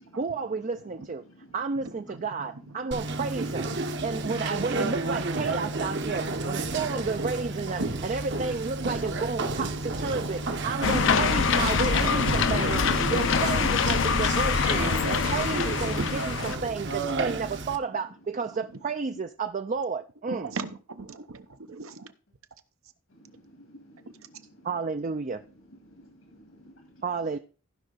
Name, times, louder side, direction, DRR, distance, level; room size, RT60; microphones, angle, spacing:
voice 1, 0.2-1.2 1.5-3.7 4.0-12.8 13.1-20.5 24.6-25.4 27.0-27.4, right 4 dB, 35° right, 0.4 m, -32 dB
voice 2, 1.2-1.6 2.1-3.1 23.1-24.8 25.2-27.0, equal, 75° left, 1.8 m, -54 dB
voice 3, 1.8-2.7 9.5-9.6 10.6-11.2 20.3-22.1, right 4 dB, 80° right, 0.9 m, -40 dB
Conversation, 2.9-17.8, right 2 dB, 55° right, 1.0 m, -31 dB
sound 1, 10.8-16.6, left 5 dB, 60° left, 0.5 m, -25 dB
15.0 x 5.5 x 3.9 m
head